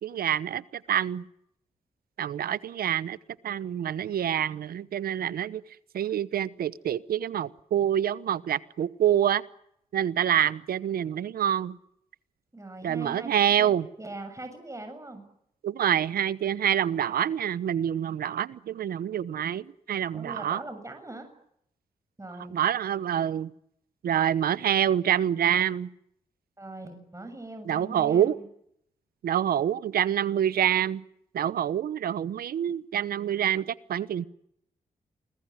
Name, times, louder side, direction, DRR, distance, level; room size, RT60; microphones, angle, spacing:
voice 1, 0.0-0.6 0.9-1.2 2.2-3.2 3.4-5.6 5.9-9.4 9.9-11.8 12.8-13.9 15.6-20.6 22.5-23.5 24.0-25.9 27.7-28.4 29.2-31.0 31.3-34.2, right 10 dB, 80° right, 1.0 m, -26 dB
voice 2, 12.5-13.7 14.0-15.2 20.1-21.3 22.2-22.6 26.6-28.4, right 2 dB, 20° right, 7.3 m, -41 dB
28.5 x 21.0 x 9.6 m
supercardioid pair, 50°, 15 cm